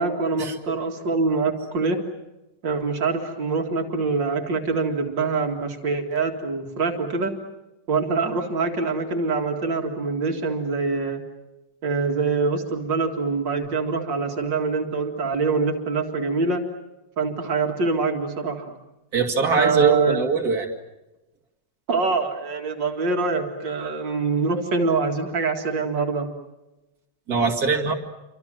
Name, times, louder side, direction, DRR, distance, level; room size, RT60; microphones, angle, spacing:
voice 1, 0.0-2.0 2.6-7.3 7.9-11.2 11.8-16.6 17.2-18.7 19.6-20.2 21.9-26.3, right 4 dB, 80° right, 2 dB, 2.7 m, -24 dB
voice 2, 19.1-20.7 27.3-27.9, right 4 dB, 55° right, 1 dB, 2.9 m, -21 dB
28.5 x 25.0 x 7.6 m, 1.0 s
omnidirectional pair, 1.9 m